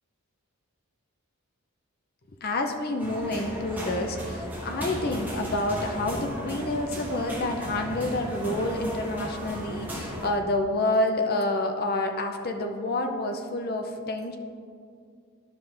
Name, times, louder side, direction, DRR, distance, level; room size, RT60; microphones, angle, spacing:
voice 1, 2.4-14.4, left 2 dB, 45° left, 4 dB, 0.6 m, -28 dB
sound 1, 3.0-10.3, equal, 10° right, 1.2 m, -35 dB
12.5 x 5.4 x 3.3 m, 2.3 s
head